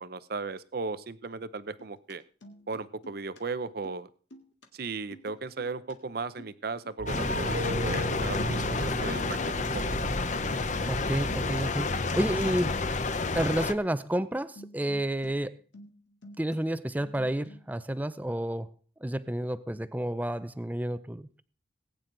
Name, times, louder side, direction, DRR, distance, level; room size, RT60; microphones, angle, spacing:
voice 1, 0.0-2.2 2.7-4.1 4.7-10.1, right 4 dB, 55° right, 15 dB, 0.6 m, -36 dB
sound 1, 1.6-2.1 2.4-3.4 3.7-4.0 4.3-4.7 5.1-6.0 6.2-7.2 7.5-8.5 8.7-9.1 9.4-9.7 10.2-11.1 11.5-11.7 12.0-12.2 14.6-15.3 15.6-16.6 16.8-17.7, equal, 75° left, 2.0 m, -51 dB
sound 2, 7.0-13.0 13.3-13.4, right 1 dB, 75° right, 1.6 m, -37 dB
sound 3, 7.1-13.7, left 3 dB, 40° left, 0.8 m, -30 dB
voice 2, 10.9-12.8 13.3-15.6 16.4-18.7 19.0-21.4, right 1 dB, 10° right, 14 dB, 0.5 m, -30 dB
19.5 x 9.1 x 3.9 m, 0.43 s
head